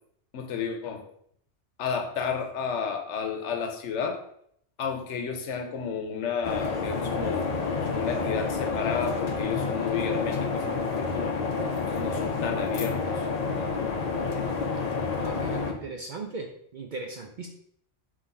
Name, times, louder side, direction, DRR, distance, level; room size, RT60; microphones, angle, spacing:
voice 1, 0.3-1.1 1.8-4.2 4.8-7.5 7.8-11.4 11.9-13.2, left 6 dB, 80° left, 4 dB, 1.0 m, -32 dB
sound 1, 6.4-15.7, left 4 dB, 50° left, 0.5 m, -29 dB
voice 2, 15.2-17.5, right 3 dB, 60° right, 2 dB, 0.5 m, -38 dB
3.7 x 3.1 x 4.0 m, 0.68 s
omnidirectional pair, 1.2 m